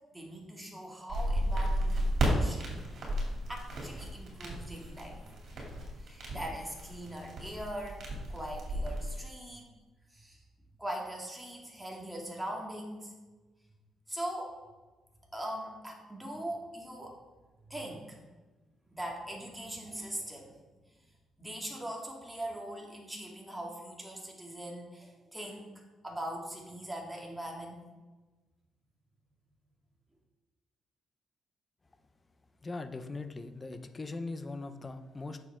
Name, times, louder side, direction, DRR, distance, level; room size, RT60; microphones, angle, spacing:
voice 1, 0.1-2.8 3.5-5.2 6.0-9.6 10.1-10.4 10.8-13.1 14.1-14.5 15.3-17.2 17.7-18.3 18.9-20.6 21.4-27.8, right 1 dB, 5° right, -1 dB, 2.1 m, -41 dB
sound 1, 1.1-9.2, right 1 dB, 60° right, 2.9 m, -33 dB
voice 2, 32.6-35.5, left 3 dB, 25° left, 9 dB, 0.7 m, -40 dB
8.8 x 6.8 x 3.7 m, 1.2 s
cardioid pair, 90°, 0 cm